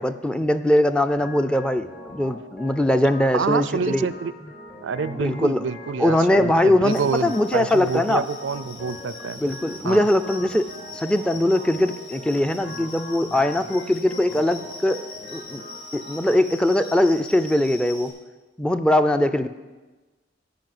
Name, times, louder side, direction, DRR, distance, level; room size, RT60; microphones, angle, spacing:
voice 1, 0.0-4.1 5.1-5.6 6.0-8.2 9.4-10.7 10.9-15.1 15.3-15.6 15.9-18.1 18.6-19.5, left 1 dB, 5° left, 9 dB, 0.4 m, -21 dB
Organ, 1.2-16.2, left 1 dB, 65° left, 3.6 m, -42 dB
voice 2, 3.3-4.3 4.8-9.4 9.8-10.1, right 5 dB, 90° right, 16 dB, 0.4 m, -27 dB
sound 1, 6.8-18.1, left 3 dB, 40° left, 3.3 m, -42 dB
14.0 x 5.5 x 7.7 m, 1.2 s
head